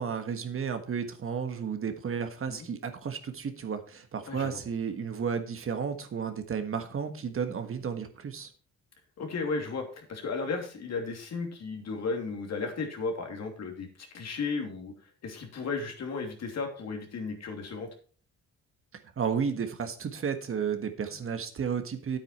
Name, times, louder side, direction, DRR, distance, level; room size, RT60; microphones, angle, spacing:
voice 1, 0.0-8.5 19.2-22.2, right 6 dB, 45° right, 7 dB, 1.5 m, -32 dB
voice 2, 4.3-4.6 9.2-17.9, left 4 dB, 60° left, 3 dB, 3.0 m, -34 dB
9.3 x 8.7 x 4.3 m, 0.40 s
cardioid pair, 90°, 30 cm